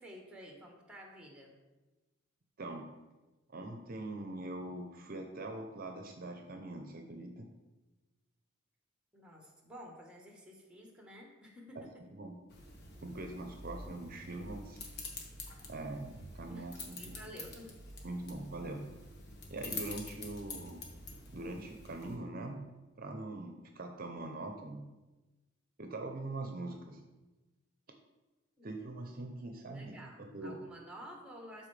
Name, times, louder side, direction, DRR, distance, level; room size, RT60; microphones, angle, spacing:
voice 1, 0.0-1.6 9.1-11.9 14.1-14.3 16.5-17.7 28.6-28.7 29.7-31.7, equal, 5° right, 0 dB, 1.3 m, -51 dB
voice 2, 3.5-7.5 11.8-11.9 12.1-12.4 13.0-14.8 15.7-17.2 18.0-18.9 19.5-20.9 21.3-22.6 23.0-24.9 25.8-27.0 28.6-30.0 30.3-30.6, right 2 dB, 45° right, 4 dB, 0.7 m, -42 dB
sound 1, 12.5-22.2, left 3 dB, 55° left, 1.3 m, -47 dB
12.5 x 4.4 x 3.3 m, 1.1 s
head